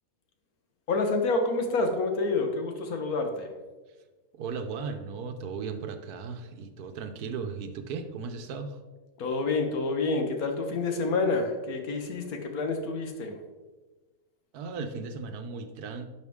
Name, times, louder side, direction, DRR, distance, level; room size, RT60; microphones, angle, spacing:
voice 1, 0.9-3.5 9.2-13.4, left 3 dB, 65° left, 5 dB, 1.5 m, -28 dB
voice 2, 4.3-8.8 14.5-16.1, right 5 dB, 75° right, 8 dB, 1.2 m, -36 dB
11.0 x 5.2 x 3.6 m, 1.3 s
omnidirectional pair, 1.7 m